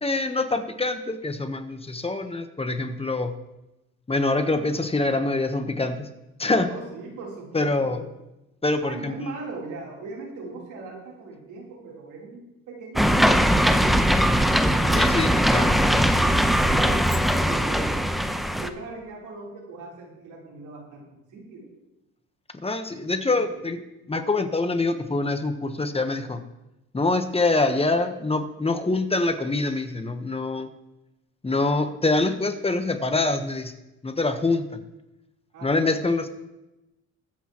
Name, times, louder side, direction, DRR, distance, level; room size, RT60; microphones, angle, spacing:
voice 1, 0.0-3.3 4.1-6.1 6.4-6.7 7.5-8.0 8.6-9.3 14.9-15.8 22.6-23.8 24.1-26.4 26.9-30.7 31.4-33.7 34.0-34.6 35.6-36.3, left 2 dB, 20° left, 7 dB, 1.1 m, -25 dB
voice 2, 6.7-8.0 8.8-12.4 12.7-14.4 14.8-15.3 15.6-16.4 16.6-18.0 18.5-21.7 22.9-23.7 35.5-36.0, right 3 dB, 85° right, -2 dB, 3.6 m, -40 dB
sound 1, 13.0-18.7, equal, ahead, 0.8 m, -20 dB
22.0 x 8.2 x 3.0 m, 0.95 s
cardioid pair, 90°, 30 cm